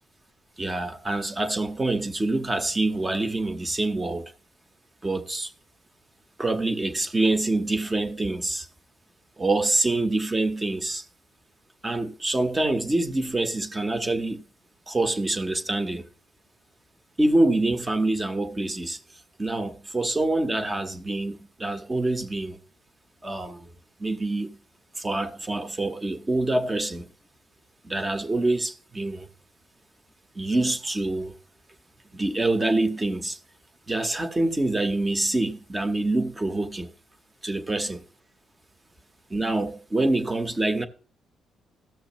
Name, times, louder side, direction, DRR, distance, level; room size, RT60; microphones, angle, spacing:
voice 1, 0.6-4.3 5.0-5.5 6.4-8.7 9.4-11.0 11.8-14.4 14.9-16.0 17.2-19.0 19.4-22.6 23.2-23.6 24.0-24.6 25.0-27.1 27.8-29.3 30.4-31.3 32.1-33.4 33.9-36.9 37.4-38.0 39.3-40.9, right 2 dB, 20° right, 0.9 m, -26 dB
14.5 x 6.3 x 3.0 m
cardioid pair, 90°, 0 cm